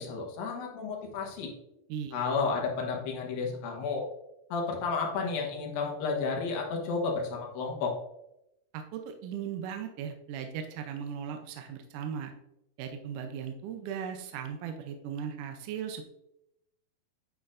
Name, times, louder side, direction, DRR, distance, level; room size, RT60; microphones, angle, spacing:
voice 1, 0.0-1.5 2.1-4.0 4.5-7.9, left 4 dB, 85° left, 0 dB, 3.0 m, -32 dB
voice 2, 1.9-2.4 8.7-12.3 12.8-16.1, right 8 dB, 75° right, 5 dB, 2.0 m, -38 dB
10.5 x 5.6 x 2.5 m, 0.85 s
omnidirectional pair, 4.0 m